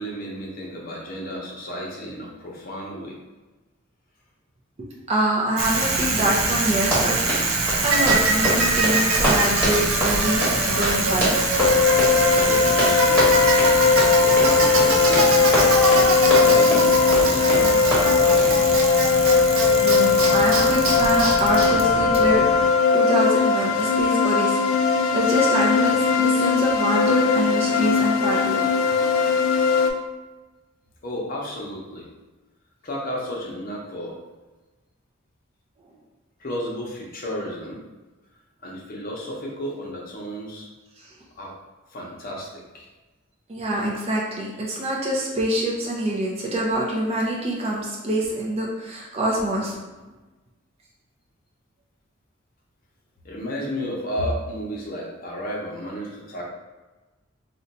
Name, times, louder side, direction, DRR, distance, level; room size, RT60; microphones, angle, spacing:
voice 1, 0.0-3.2 7.9-8.1 12.3-13.3 14.2-15.5 16.2-16.9 17.2-18.9 31.0-32.1 32.8-34.2 36.4-37.8 38.6-40.7 41.4-41.5 41.9-42.9 53.2-56.5, equal, 45° left, -2 dB, 0.7 m, -32 dB
voice 2, 4.8-11.4 19.3-19.4 19.8-28.7 41.0-41.1 43.5-49.8, right 1 dB, 30° right, -3 dB, 0.4 m, -25 dB
Bicycle, 5.6-22.6, right 2 dB, 90° right, 0.6 m, -23 dB
Run, 6.9-18.6, equal, 10° right, 1.1 m, -26 dB
sound 1, 11.6-29.9, left 5 dB, 80° left, 0.3 m, -19 dB
2.5 x 2.2 x 3.9 m, 1.2 s
head